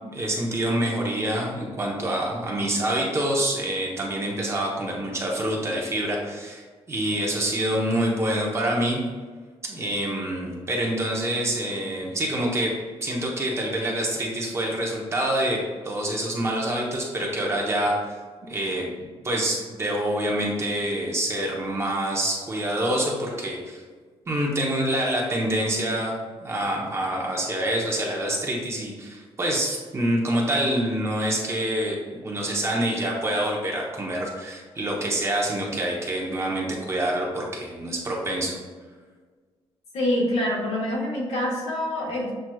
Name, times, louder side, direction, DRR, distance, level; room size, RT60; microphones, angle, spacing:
voice 1, 0.0-9.0 9.6-18.2 18.4-18.9 19.2-23.8 24.3-38.6, right 1 dB, 25° right, -2 dB, 0.9 m, -26 dB
voice 2, 39.9-42.4, left 1 dB, 80° left, -4 dB, 1.5 m, -26 dB
7.6 x 3.0 x 2.3 m, 1.5 s
wide cardioid pair, 165°, 11 cm